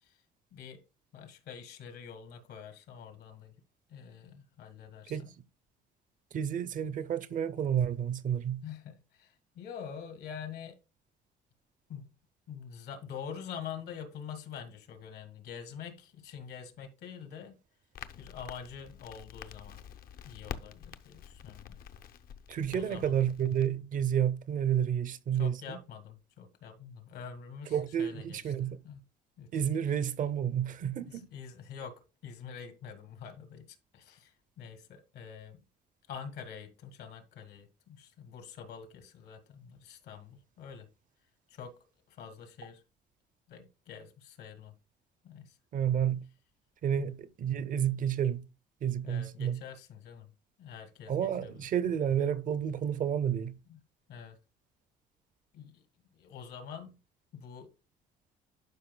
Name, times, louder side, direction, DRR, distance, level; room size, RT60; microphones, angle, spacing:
voice 1, 1.1-3.5 3.9-5.3 8.6-10.8 11.9-12.1 12.5-17.6 18.2-19.8 20.2-21.8 22.7-23.1 25.3-29.0 29.4-29.7 31.1-32.0 32.2-33.7 33.9-35.6 36.1-40.9 41.5-41.7 42.1-42.8 43.5-44.7 45.2-45.6 47.0-47.1 49.0-50.3 50.6-51.7 53.7-53.8 54.1-54.4 55.5-55.8 56.1-57.0 57.3-57.7, left 7 dB, 75° left, 1.9 m, -46 dB
voice 2, 6.3-8.6 22.5-25.8 27.7-28.8 29.5-31.3 45.7-46.2 46.8-48.5 48.8-49.6 51.1-53.6, right 9 dB, 50° right, 0.6 m, -30 dB
Crackle, 17.9-23.7, left 8 dB, 60° left, 0.7 m, -47 dB
12.0 x 5.2 x 2.2 m
cardioid pair, 110°, 17 cm